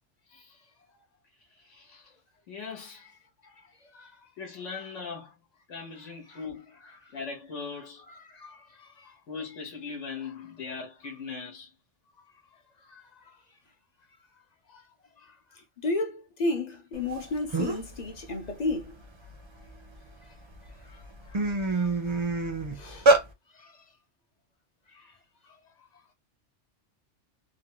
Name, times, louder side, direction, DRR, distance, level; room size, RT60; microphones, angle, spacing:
voice 1, 0.3-0.7 1.3-2.2 2.5-3.1 4.4-5.3 5.7-6.8 7.1-8.0 9.3-11.7 24.9-25.2, left 5 dB, 90° left, 1.3 m, -40 dB
voice 2, 8.3-9.1 12.9-13.0 14.7-14.8 15.2-15.3 15.8-18.9 21.3-21.4 21.8-21.9 22.7-23.1 23.5-23.7 25.5-25.6, left 2 dB, 45° left, 0.6 m, -33 dB
sound 1, 17.2-17.3 17.5-17.9 18.4-20.0 20.5-20.7 21.0-23.2, right 2 dB, 35° right, 0.4 m, -25 dB
3.3 x 2.2 x 2.8 m
omnidirectional pair, 1.2 m